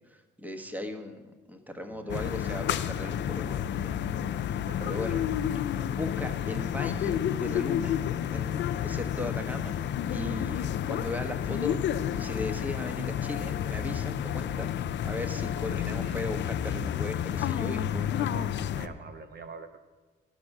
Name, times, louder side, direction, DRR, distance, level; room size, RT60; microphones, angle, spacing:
voice 1, 0.4-1.2 1.5-4.0 4.4-5.2 5.9-8.0 8.3-9.8 10.1-14.7 15.0-18.4, left 1 dB, 10° right, 6 dB, 1.2 m, -37 dB
voice 2, 1.9-2.3 4.3-5.4 5.8-6.0 15.8-16.2 18.3-19.8, right 5 dB, 55° right, 8 dB, 0.7 m, -46 dB
sound 1, 2.1-18.9, left 10 dB, 65° left, 0.5 m, -30 dB
12.0 x 6.1 x 6.5 m, 1.4 s
cardioid pair, 90°, 20 cm